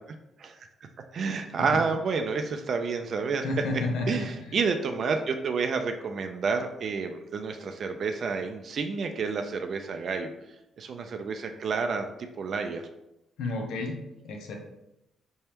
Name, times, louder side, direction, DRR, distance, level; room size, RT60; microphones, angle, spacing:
voice 1, 1.1-10.3 10.8-12.8, right 5 dB, 55° right, 6 dB, 0.4 m, -30 dB
voice 2, 3.4-4.3 13.4-14.0 14.2-14.6, left 2 dB, 85° left, 2 dB, 0.8 m, -30 dB
4.4 x 3.4 x 2.9 m, 0.89 s
cardioid pair, 90°, 0 cm